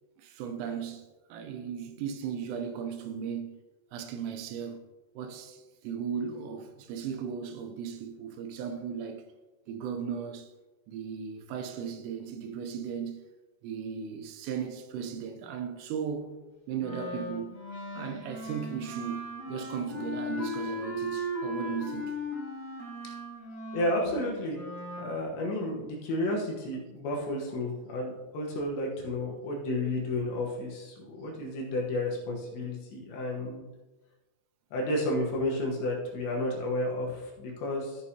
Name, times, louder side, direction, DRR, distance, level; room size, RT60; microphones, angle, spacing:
voice 1, 0.2-3.5 3.9-4.8 5.2-9.2 9.7-10.5 10.9-13.2 13.6-16.3 16.7-17.6 17.9-22.2 23.1-23.2, right 7 dB, 85° right, 3.4 m, -36 dB
Wind instrument woodwind instrument, 16.8-25.1, left 1 dB, 35° left, 1.6 m, -37 dB
voice 2, 23.7-24.6 25.0-33.6 34.7-38.0, left 1 dB, 70° left, 3.2 m, -32 dB
14.5 x 6.4 x 2.9 m
omnidirectional pair, 5.8 m